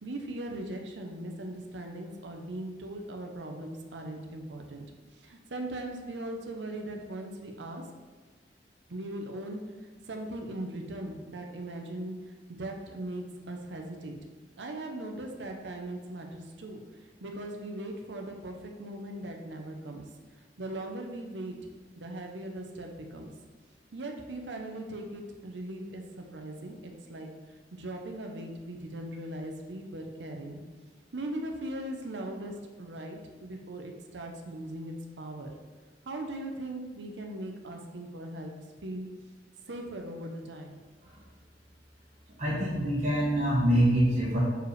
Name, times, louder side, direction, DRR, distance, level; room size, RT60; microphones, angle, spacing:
voice 1, 0.0-4.8 5.1-7.8 8.9-9.6 10.1-12.2 12.5-14.2 14.6-16.8 17.2-20.0 20.3-21.6 22.0-23.3 23.9-27.3 27.7-30.6 31.1-35.5 36.0-38.5 38.8-39.1 39.7-40.8, right 1 dB, 80° right, 3 dB, 0.7 m, -39 dB
voice 2, 42.4-44.4, right 1 dB, 40° right, -6 dB, 1.2 m, -25 dB
6.5 x 4.8 x 3.2 m, 1.4 s
head